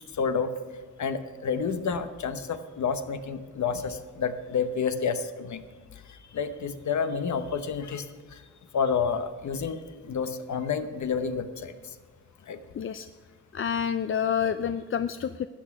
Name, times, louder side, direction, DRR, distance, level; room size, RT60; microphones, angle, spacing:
voice 1, 0.1-0.5 1.0-5.6 6.1-8.4 8.7-11.7 12.5-12.6, left 6 dB, 70° left, 10 dB, 0.9 m, -29 dB
voice 2, 12.7-13.1 13.5-15.5, left 8 dB, 45° left, 11 dB, 0.4 m, -28 dB
13.0 x 8.6 x 5.9 m, 1.4 s
cardioid pair, 85°, 30 cm